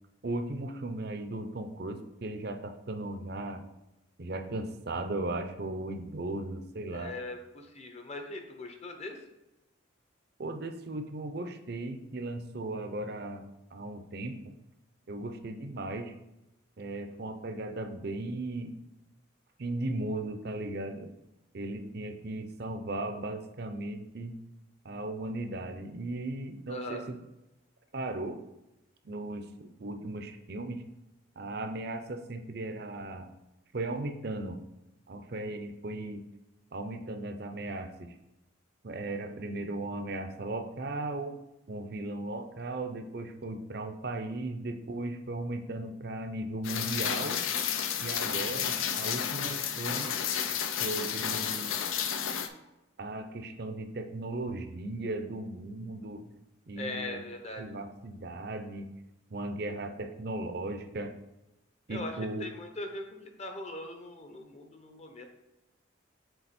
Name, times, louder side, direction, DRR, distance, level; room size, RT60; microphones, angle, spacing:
voice 1, 0.2-3.6 4.2-7.2 10.4-14.4 15.1-16.1 16.8-18.7 19.6-21.1 21.5-24.3 24.8-27.2 27.9-28.4 29.0-30.8 31.4-33.3 33.7-34.6 35.1-36.2 36.7-38.2 38.8-41.4 41.7-47.4 48.0-50.1 50.8-51.8 53.0-56.2 56.7-57.2 57.6-58.9 59.3-61.1 61.9-62.5, right 2 dB, 50° right, 8 dB, 0.6 m, -37 dB
voice 2, 6.9-9.2 26.7-27.0 56.8-57.6 61.9-62.1 62.4-65.3, left 2 dB, 30° left, 4 dB, 0.8 m, -40 dB
Rain, 46.6-52.5, left 8 dB, 85° left, 0.6 m, -31 dB
6.9 x 3.9 x 4.2 m, 0.95 s
head